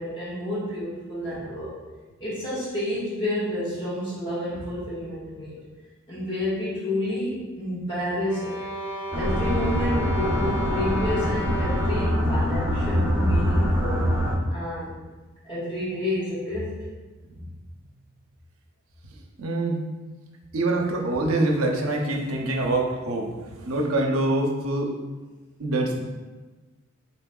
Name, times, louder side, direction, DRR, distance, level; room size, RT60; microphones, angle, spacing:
voice 1, 0.0-1.7 2.2-5.6 6.1-8.6 9.1-14.1 14.5-14.9 15.4-16.7, left 1 dB, 25° left, -10 dB, 1.5 m, -30 dB
sound 1, 8.2-12.3, equal, 50° left, 1.0 m, -33 dB
sound 2, 9.1-14.4, equal, 10° right, 0.7 m, -24 dB
voice 2, 19.4-19.8 20.5-24.9 25.6-26.0, right 2 dB, 75° right, 1 dB, 0.6 m, -25 dB
4.2 x 3.5 x 2.3 m, 1.2 s
head